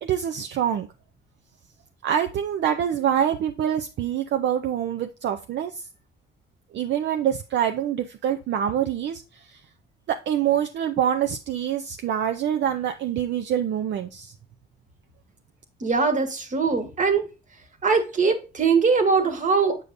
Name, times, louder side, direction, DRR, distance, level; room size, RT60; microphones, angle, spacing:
voice 1, 0.0-0.9 2.0-5.9 6.7-9.6 10.1-14.3, right 9 dB, 65° right, 0.5 m, -25 dB
voice 2, 15.8-17.3 17.8-19.8, right 4 dB, 40° right, 1.4 m, -21 dB
8.3 x 5.0 x 2.6 m
cardioid pair, 90°, 20 cm